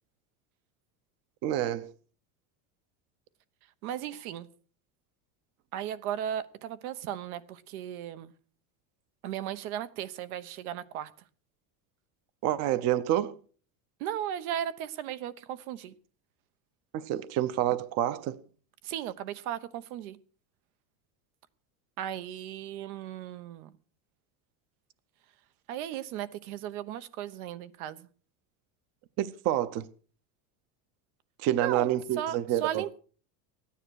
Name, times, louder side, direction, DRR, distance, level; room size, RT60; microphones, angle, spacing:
voice 1, 1.4-1.9 12.4-13.3 16.9-18.4 29.2-29.9 31.4-32.9, right 12 dB, 40° right, 0.7 m, -28 dB
voice 2, 3.8-4.5 5.7-8.3 9.2-11.1 14.0-15.9 18.8-20.2 22.0-23.7 25.7-28.1 31.6-31.9 32.2-33.0, right 11 dB, 85° right, 1.2 m, -36 dB
14.0 x 9.9 x 6.3 m
cardioid pair, 165°, 42 cm